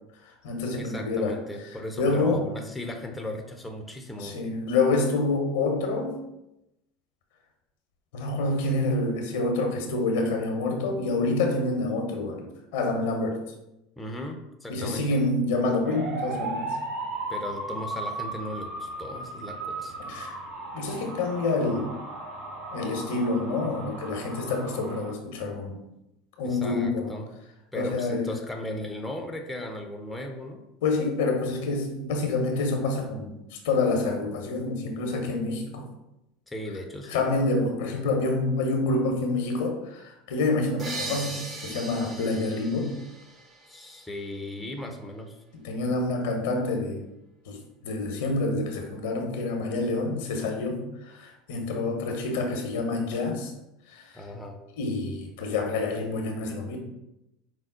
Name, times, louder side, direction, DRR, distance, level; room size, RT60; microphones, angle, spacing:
voice 1, 0.2-1.4 2.0-2.4 4.2-6.2 8.1-13.4 14.7-16.7 20.1-20.4 20.7-21.9 22.7-25.8 26.4-27.2 27.7-28.3 30.8-35.9 37.1-42.9 45.5-47.1 47.5-47.6 47.8-53.5 53.9-54.2 54.8-56.8, left 3 dB, 70° left, 2 dB, 0.8 m, -27 dB
voice 2, 0.8-4.4 14.0-15.0 17.3-20.0 26.4-27.3 27.7-30.6 36.5-37.3 43.6-45.4 54.1-54.6, left 1 dB, 10° left, 3 dB, 0.6 m, -37 dB
sound 1, 15.8-25.1, right 2 dB, 65° right, 0.9 m, -36 dB
sound 2, 40.8-44.4, right 2 dB, 35° right, 1.0 m, -39 dB
4.7 x 2.0 x 3.7 m, 0.89 s
hypercardioid pair, 80°, 0 cm